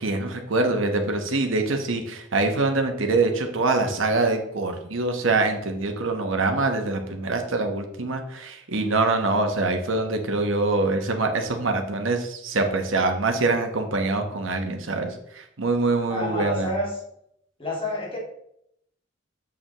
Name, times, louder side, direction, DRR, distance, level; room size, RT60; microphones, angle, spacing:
voice 1, 0.0-16.7, right 3 dB, 90° right, 4 dB, 1.2 m, -24 dB
voice 2, 16.1-17.0 17.6-18.2, left 1 dB, 25° left, -4 dB, 2.3 m, -28 dB
7.3 x 6.7 x 3.1 m, 0.74 s
head